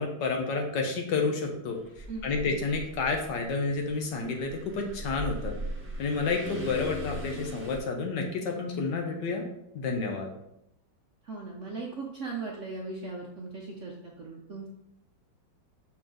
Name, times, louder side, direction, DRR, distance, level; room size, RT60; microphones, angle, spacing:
voice 1, 0.0-5.6 6.0-9.4 9.7-10.3, left 4 dB, 70° left, 2 dB, 1.5 m, -30 dB
sound 1, 1.7-7.8, equal, 10° right, 1.0 m, -40 dB
voice 2, 2.1-2.4 11.2-14.7, right 3 dB, 60° right, -1 dB, 0.8 m, -38 dB
6.2 x 4.4 x 3.8 m, 0.79 s
omnidirectional pair, 2.1 m